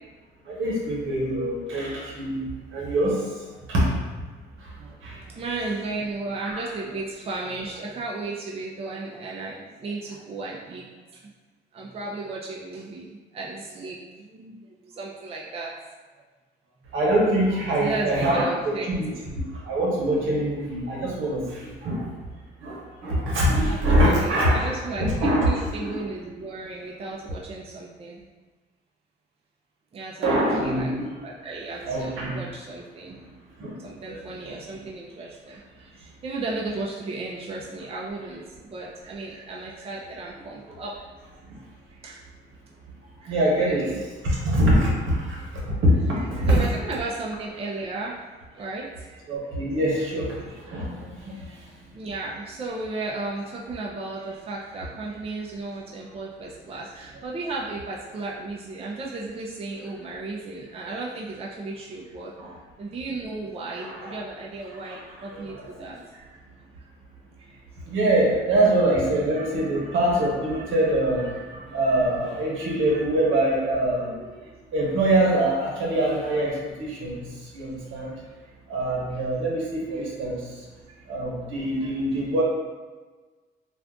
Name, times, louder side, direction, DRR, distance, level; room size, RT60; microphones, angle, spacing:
voice 1, 0.5-3.9 4.6-4.7 5.0-5.2 6.4-6.6 16.9-19.1 19.5-22.1 22.6-24.7 25.0-25.5 25.8-26.0 30.2-31.1 31.8-32.4 33.6-33.7 34.1-34.2 41.5-41.6 43.3-43.9 44.2-46.6 49.3-51.5 62.4-62.5 63.8-64.2 64.8-65.0 65.3-65.9 67.8-74.3 74.7-78.1 78.7-80.6 81.1-82.4, right 1 dB, 85° right, -4 dB, 1.0 m, -24 dB
voice 2, 4.8-11.3 11.7-15.9 16.1-16.2 17.8-19.2 23.6-28.3 29.9-30.9 31.2-33.5 33.8-41.0 41.9-42.2 43.2-44.0 46.2-48.2 48.5-49.2 51.3-51.5 51.9-62.3 62.8-66.4 67.4-67.6 74.4-74.5 77.5-77.9 79.1-79.3 79.9-80.1 81.0-81.1 81.4-82.3, right 3 dB, 30° right, -4 dB, 0.5 m, -35 dB
2.5 x 2.4 x 3.5 m, 1.3 s
cardioid pair, 90°, 20 cm